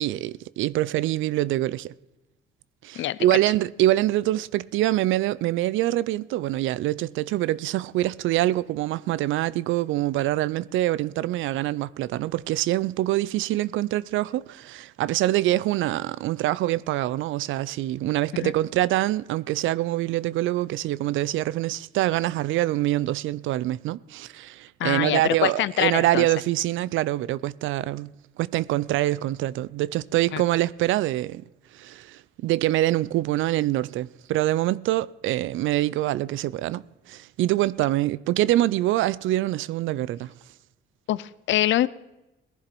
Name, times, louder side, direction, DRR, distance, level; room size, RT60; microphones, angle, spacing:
voice 1, 0.0-1.9 2.8-28.1 28.4-31.4 31.7-40.3, right 15 dB, 85° right, 0.4 m, -25 dB
voice 2, 24.8-26.3 30.3-30.4 41.1-41.9, left 13 dB, 70° left, 0.6 m, -24 dB
18.0 x 11.0 x 4.5 m
cardioid pair, 90°, 20 cm